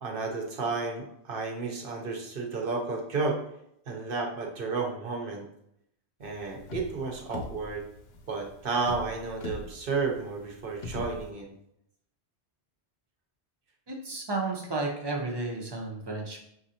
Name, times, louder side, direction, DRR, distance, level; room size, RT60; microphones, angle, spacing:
voice 1, 0.0-3.4 3.9-5.5 6.2-7.8 8.3-11.5, right 4 dB, 55° right, 1 dB, 0.9 m, -32 dB
sound 1, 6.2-11.3, left 2 dB, 70° left, 0.9 m, -42 dB
voice 2, 13.9-16.4, right 3 dB, 25° right, 0 dB, 0.7 m, -32 dB
5.7 x 2.5 x 2.8 m, 0.74 s
omnidirectional pair, 1.1 m